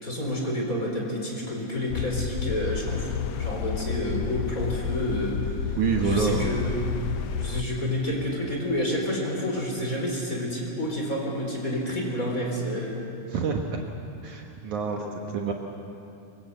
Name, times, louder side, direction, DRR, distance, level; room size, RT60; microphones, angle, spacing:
voice 1, 0.0-6.9 7.4-13.0 14.8-15.2, equal, 20° left, -1 dB, 4.5 m, -29 dB
sound 1, 1.9-7.6, left 7 dB, 75° left, 1.8 m, -31 dB
voice 2, 5.8-6.5 13.3-13.8 14.2-15.0 15.3-15.5, right 5 dB, 65° right, 2 dB, 2.4 m, -26 dB
25.0 x 24.0 x 8.0 m, 2.8 s
omnidirectional pair, 4.2 m